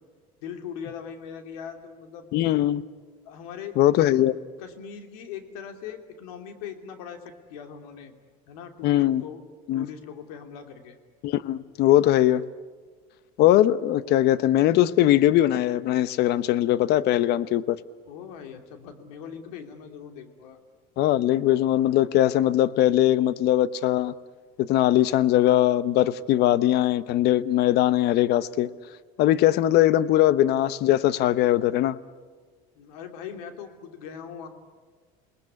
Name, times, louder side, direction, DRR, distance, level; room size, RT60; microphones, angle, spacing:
voice 1, 0.4-2.3 3.2-4.2 4.6-8.1 8.5-9.4 9.7-11.0 18.0-20.6 32.8-34.5, left 7 dB, 80° left, 6 dB, 3.0 m, -40 dB
voice 2, 2.3-2.8 3.8-4.3 8.8-9.2 9.7-9.9 11.2-12.4 13.4-17.8 21.0-24.1 24.6-28.7 29.2-32.0, left 13 dB, 60° left, 16 dB, 1.0 m, -21 dB
28.5 x 20.0 x 9.8 m, 1.5 s
supercardioid pair, 90°, 19 cm